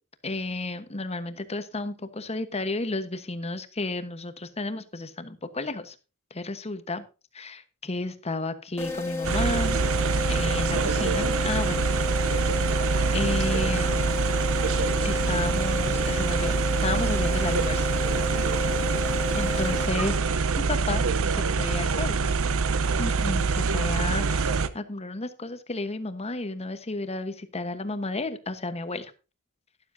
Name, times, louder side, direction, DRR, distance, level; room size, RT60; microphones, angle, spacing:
voice 1, 0.2-5.9 6.3-7.0 7.3-9.8 10.3-11.9 12.4-12.8 13.1-14.2 15.0-16.5 16.8-17.9 19.4-21.0 21.3-22.3 23.0-29.1, left 2 dB, 30° left, 11 dB, 1.2 m, -32 dB
sound 1, 8.8-20.5, left 4 dB, 10° left, 2.1 m, -32 dB
sound 2, 9.2-24.7, right 4 dB, 65° right, 0.8 m, -25 dB
12.5 x 12.0 x 2.7 m, 0.32 s
head